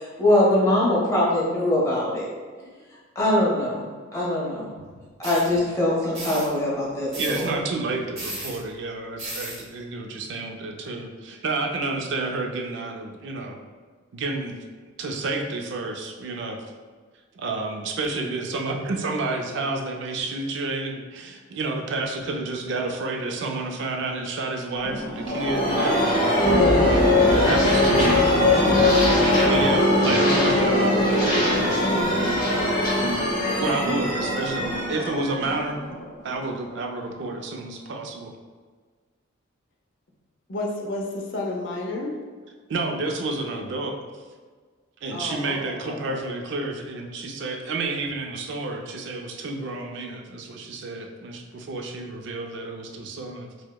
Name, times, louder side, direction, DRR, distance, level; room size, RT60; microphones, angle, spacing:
voice 1, 0.0-2.3 3.1-3.9 4.1-4.7 5.2-7.6, left 1 dB, 15° left, -7 dB, 0.8 m, -22 dB
sound 1, 5.2-5.5 6.1-6.5 7.1-7.5 8.2-8.6 9.2-9.6, right 1 dB, 30° right, 0.8 m, -34 dB
voice 2, 7.2-13.6 14.1-14.6 15.0-16.7 17.3-26.3 26.7-32.5 33.6-35.8 36.2-38.3 42.7-44.0 45.0-53.5, right 2 dB, 55° right, 3 dB, 0.4 m, -30 dB
sound 2, 24.8-36.3, left 1 dB, 40° left, 1.0 m, -21 dB
voice 3, 40.5-42.2 45.1-46.2, left 2 dB, 60° left, -1 dB, 0.5 m, -31 dB
4.5 x 2.0 x 2.2 m, 1.5 s
head